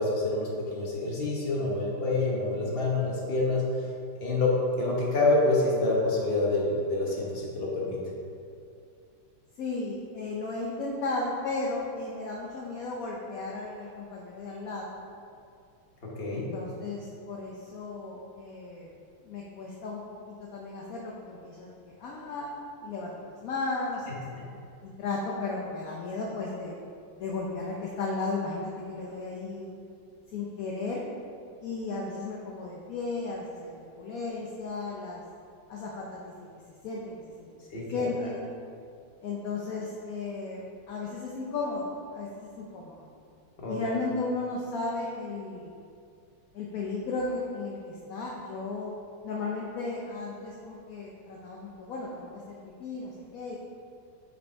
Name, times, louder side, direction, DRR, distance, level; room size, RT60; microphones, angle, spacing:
voice 1, 0.0-3.8 4.2-4.5 4.8-8.0 16.2-16.5 37.7-38.0 43.6-43.8, left 2 dB, 35° left, -4 dB, 1.2 m, -27 dB
voice 2, 9.6-14.9 16.3-18.9 19.2-22.5 22.8-24.2 24.8-26.8 27.2-29.7 30.3-31.0 31.6-35.2 35.7-36.5 36.8-37.6 37.9-38.5 39.2-43.1 43.7-45.7 46.5-48.9 49.2-53.6, left 3 dB, 65° left, -3 dB, 0.9 m, -35 dB
5.7 x 5.3 x 4.5 m, 2.4 s
omnidirectional pair, 2.2 m